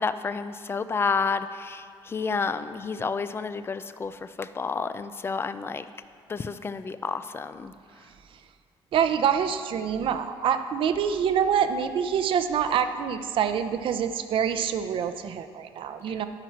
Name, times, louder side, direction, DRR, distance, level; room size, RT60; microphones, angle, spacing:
voice 1, 0.0-5.8 6.3-7.7, left 5 dB, 25° left, 12 dB, 0.4 m, -30 dB
voice 2, 8.9-16.2, right 8 dB, 65° right, 9 dB, 0.7 m, -26 dB
12.5 x 5.9 x 5.9 m, 2.3 s
cardioid pair, 135°, 10 cm